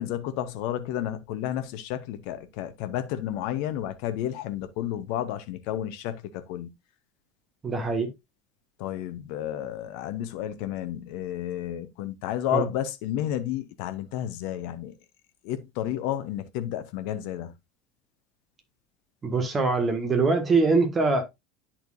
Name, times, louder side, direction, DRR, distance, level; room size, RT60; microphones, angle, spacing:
voice 1, 0.0-6.7 8.8-14.9 15.4-17.5, left 11 dB, 60° left, 0.9 m, -31 dB
voice 2, 7.6-8.1 12.5-12.7 19.2-21.2, right 3 dB, 25° right, 1.8 m, -23 dB
10.5 x 4.4 x 2.6 m
figure-of-eight pair, 70°, 0 cm